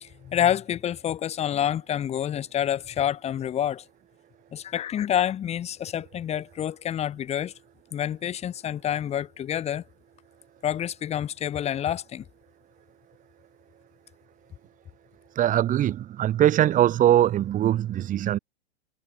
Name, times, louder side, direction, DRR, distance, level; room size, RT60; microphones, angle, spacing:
voice 1, 0.0-3.8 4.5-7.5 7.9-9.8 10.6-12.2, left 10 dB, 20° left, 1.9 m, -28 dB
voice 2, 15.4-18.4, right 12 dB, 20° right, 3.0 m, -21 dB
figure-of-eight pair, 105°, 35 cm